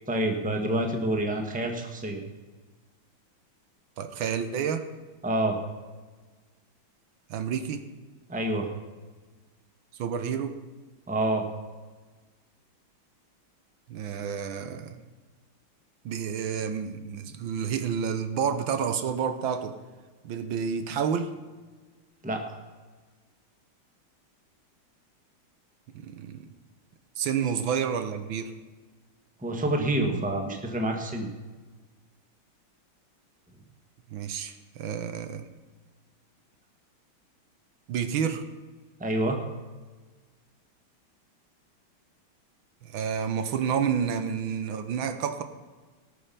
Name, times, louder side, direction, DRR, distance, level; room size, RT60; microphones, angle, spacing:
voice 1, 0.1-2.2 5.2-5.6 8.3-8.7 11.1-11.5 22.2-22.6 29.4-31.3 39.0-39.4, right 1 dB, 5° right, 3 dB, 1.1 m, -27 dB
voice 2, 4.0-4.9 7.3-7.8 9.9-10.5 13.9-15.0 16.0-19.8 20.2-21.3 25.9-26.5 27.2-28.5 34.1-35.5 37.9-38.4 42.8-45.4, right 7 dB, 75° right, 9 dB, 1.6 m, -29 dB
19.0 x 6.8 x 5.7 m, 1.4 s
omnidirectional pair, 2.2 m